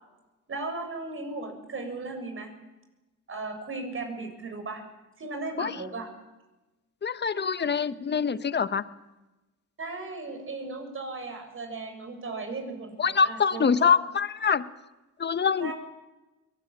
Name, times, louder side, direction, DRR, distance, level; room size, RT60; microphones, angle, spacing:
voice 1, 0.5-2.5 3.3-4.8 5.2-6.1 9.8-14.0 15.6-15.7, right 3 dB, 45° right, 5 dB, 7.1 m, -36 dB
voice 2, 7.0-8.8 13.0-14.6 15.2-15.7, left 6 dB, 35° left, 13 dB, 1.2 m, -24 dB
23.0 x 19.0 x 8.9 m, 1.1 s
cardioid pair, 90°, 30 cm